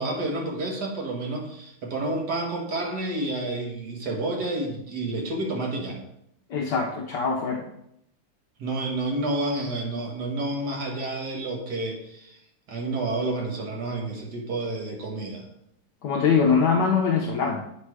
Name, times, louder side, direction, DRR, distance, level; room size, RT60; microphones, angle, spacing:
voice 1, 0.0-6.0 8.6-12.4 12.7-15.5, right 2 dB, 50° right, 0 dB, 1.9 m, -30 dB
voice 2, 6.5-7.6 16.0-17.6, left 5 dB, 65° left, -1 dB, 1.2 m, -23 dB
8.2 x 4.3 x 4.7 m, 0.76 s
omnidirectional pair, 2.4 m